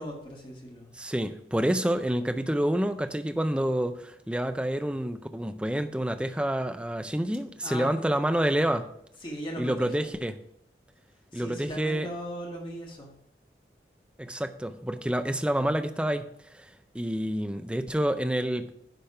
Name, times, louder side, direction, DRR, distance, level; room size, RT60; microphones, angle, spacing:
voice 1, 0.0-0.9 7.6-7.9 9.2-10.1 11.3-13.1, equal, 30° left, -1 dB, 1.6 m, -38 dB
voice 2, 1.0-8.9 9.6-10.4 11.3-12.1 14.2-16.3 16.5-18.7, right 1 dB, 5° right, 8 dB, 0.4 m, -28 dB
10.0 x 3.4 x 5.5 m, 0.74 s
head